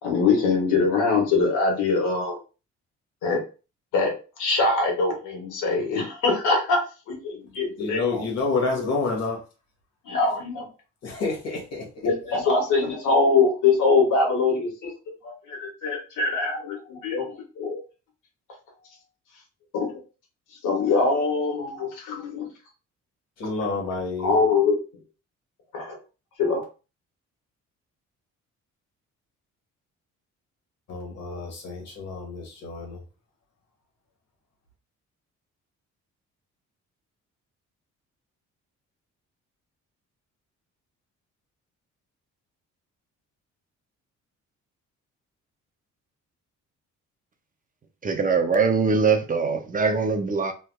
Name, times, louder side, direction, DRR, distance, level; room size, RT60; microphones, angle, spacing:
voice 1, 0.0-2.4 3.2-3.4 3.9-4.1 4.4-6.8 7.1-8.3 8.7-8.9 10.0-10.6 12.0-14.9 15.2-17.8 19.7-19.8 20.6-22.5 24.2-24.7 25.7-25.9 26.4-26.6, left 4 dB, 85° left, 0 dB, 1.5 m, -23 dB
voice 2, 7.8-9.4 11.0-12.1 23.4-24.3 30.9-33.0, left 3 dB, 60° left, 1 dB, 1.5 m, -29 dB
voice 3, 48.0-50.5, right 5 dB, 30° right, 6 dB, 0.5 m, -22 dB
3.3 x 2.9 x 2.2 m, 0.33 s
cardioid pair, 90°, 30 cm